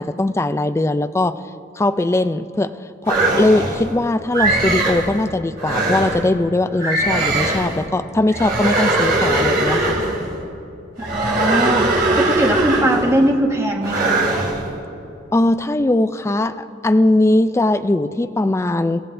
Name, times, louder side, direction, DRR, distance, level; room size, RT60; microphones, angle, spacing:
voice 1, 0.0-1.4 1.8-2.7 3.0-10.0 15.3-19.0, left 2 dB, 15° left, 10 dB, 0.3 m, -19 dB
sound 1, 3.1-3.9 4.3-5.1 5.6-6.2 6.8-7.8 8.3-10.2 11.0-13.2 13.8-14.6, right 2 dB, 50° right, 2.9 m, -20 dB
voice 2, 11.1-14.2, right 1 dB, 15° right, 0 dB, 1.5 m, -20 dB
29.5 x 15.5 x 2.6 m, 2.6 s
head